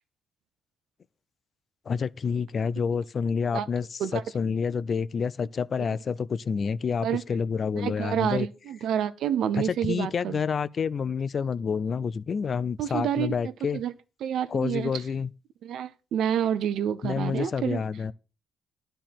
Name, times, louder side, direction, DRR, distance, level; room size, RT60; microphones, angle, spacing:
voice 1, 1.9-8.5 9.6-13.8 14.5-15.3 17.0-18.1, left 6 dB, 45° left, 0.5 m, -28 dB
voice 2, 7.7-10.4 12.8-13.9 14.2-14.9 15.6-17.8, right 9 dB, 75° right, 0.8 m, -28 dB
10.0 x 4.5 x 7.5 m
cardioid pair, 90°, 0 cm